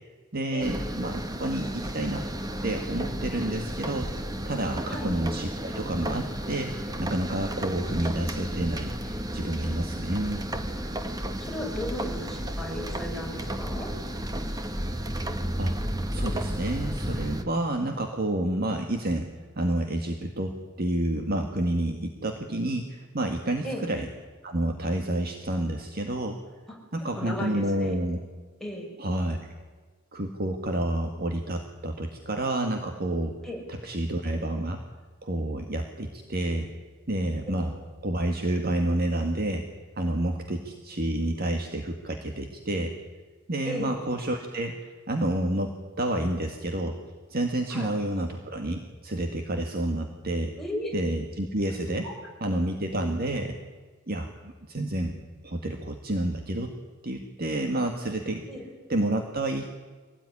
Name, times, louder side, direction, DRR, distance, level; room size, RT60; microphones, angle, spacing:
voice 1, 0.3-2.2 2.6-4.1 4.5-10.4 15.6-15.8 16.1-19.3 19.6-24.1 24.4-26.4 26.9-28.2 29.0-29.4 30.1-33.4 33.7-34.8 35.2-36.7 37.1-37.7 38.0-39.7 40.0-42.9 43.5-44.8 45.1-47.0 47.3-50.5 50.9-52.1 52.4-53.6 54.1-55.1 55.4-56.7 57.0-58.4 58.9-59.7, right 1 dB, 50° right, 4 dB, 1.9 m, -29 dB
sound 1, 0.6-17.4, right 1 dB, 20° right, 1.5 m, -33 dB
voice 2, 11.4-13.9 23.6-23.9 27.1-27.9 28.6-28.9 33.4-33.6 43.6-44.0 47.7-47.9 50.6-50.9 52.0-52.1 58.5-58.6, equal, ahead, -2 dB, 6.2 m, -35 dB
24.5 x 18.0 x 9.9 m, 1.4 s
head